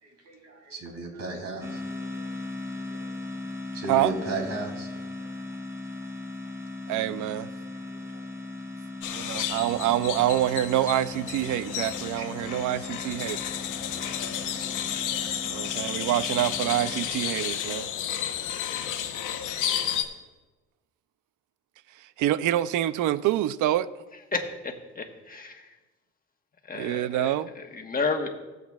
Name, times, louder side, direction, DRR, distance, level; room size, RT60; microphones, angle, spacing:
voice 1, 0.0-2.3 2.7-3.0 3.7-5.4 7.7-8.2 12.2-12.3, right 2 dB, 55° right, 2.9 m, -37 dB
sound 1, 1.6-17.1, left 2 dB, 10° right, 2.1 m, -38 dB
voice 2, 6.9-7.5 9.1-13.4 15.5-17.9 22.0-23.9 26.7-27.5, right 13 dB, 80° right, 0.5 m, -26 dB
sound 2, 9.0-20.0, left 10 dB, 85° left, 0.9 m, -32 dB
voice 3, 24.3-25.7 26.7-28.3, left 4 dB, 30° left, 1.3 m, -32 dB
17.0 x 7.9 x 2.4 m
cardioid pair, 90°, 30 cm